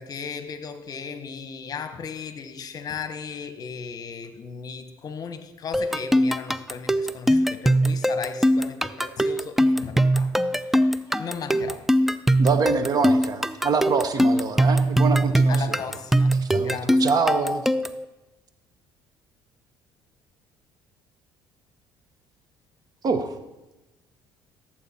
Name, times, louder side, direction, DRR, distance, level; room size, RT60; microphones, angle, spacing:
voice 1, 0.0-11.9 15.5-17.2, left 6 dB, 45° left, 1.1 m, -36 dB
sound 1, 5.7-18.0, right 1 dB, 5° right, 0.4 m, -21 dB
voice 2, 12.4-15.8 16.3-17.6 23.0-23.4, right 5 dB, 45° right, 1.2 m, -25 dB
16.0 x 7.6 x 4.2 m
supercardioid pair, 85°, 9 cm